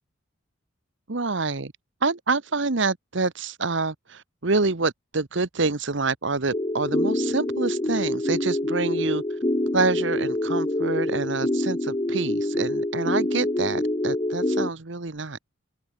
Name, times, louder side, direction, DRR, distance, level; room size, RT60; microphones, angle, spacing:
voice 1, 1.1-1.7 2.0-9.4 9.7-15.4, right 3 dB, 60° right, 1.1 m, -27 dB
sound 1, 6.5-14.7, left 1 dB, 25° left, 0.9 m, -26 dB
open air
head